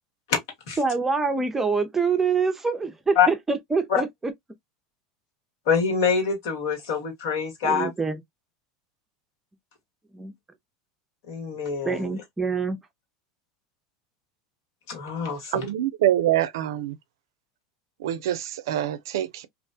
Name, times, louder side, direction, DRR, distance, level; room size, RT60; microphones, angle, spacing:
voice 1, 0.8-4.3 7.6-8.2 10.1-10.3 11.8-12.8, right 4 dB, 15° right, 0.5 m, -25 dB
voice 2, 5.7-7.9 11.3-12.0 14.9-15.7, left 6 dB, 75° left, 1.4 m, -24 dB
voice 3, 15.5-17.0 18.0-19.5, right 12 dB, 80° right, 0.4 m, -25 dB
2.4 x 2.2 x 2.5 m
supercardioid pair, 110°, 2 cm